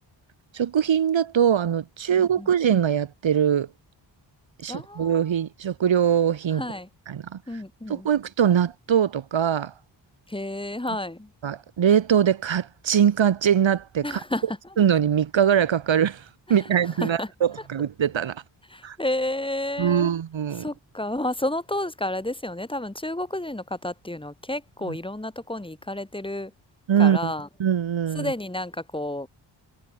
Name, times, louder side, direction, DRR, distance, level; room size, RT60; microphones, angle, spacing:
voice 1, 0.5-3.7 4.6-6.6 7.1-7.4 7.9-9.7 11.4-14.2 14.8-16.2 16.5-18.4 18.8-19.0 19.8-20.7 24.9-25.0 26.9-27.3 27.6-28.3, right 8 dB, 85° right, 6.4 m, -22 dB
voice 2, 2.2-2.5 4.7-5.2 6.5-6.9 7.5-8.1 10.3-11.3 14.0-14.6 16.6-17.3 18.7-20.1 20.6-26.5 27.0-27.5 28.1-29.3, left 1 dB, 10° left, 5.1 m, -31 dB
wide cardioid pair, 125°, 45 cm